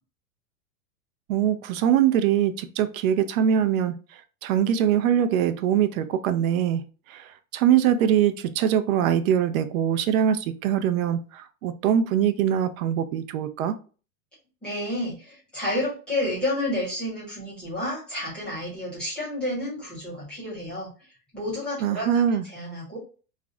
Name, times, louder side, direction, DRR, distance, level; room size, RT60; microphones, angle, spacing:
voice 1, 1.3-4.0 4.4-6.8 7.1-13.7 21.8-22.4, right 9 dB, 65° right, 0.5 m, -23 dB
voice 2, 14.6-21.1 21.3-23.0, left 1 dB, 5° left, 0.3 m, -30 dB
2.5 x 2.1 x 3.6 m
supercardioid pair, 155°, 45 cm